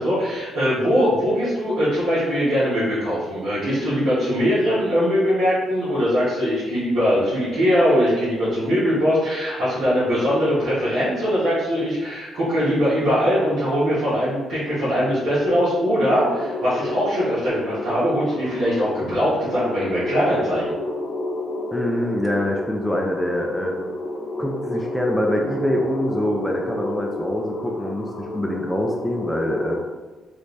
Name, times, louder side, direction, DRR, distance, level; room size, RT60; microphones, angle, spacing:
voice 1, 0.0-20.6, equal, 80° right, -11 dB, 1.2 m, -21 dB
sound 1, 16.1-29.8, left 2 dB, 50° left, 0.7 m, -30 dB
voice 2, 21.7-23.7 24.4-29.8, equal, ahead, -1 dB, 0.4 m, -25 dB
3.2 x 2.5 x 3.2 m, 1.2 s
cardioid pair, 90°, 0 cm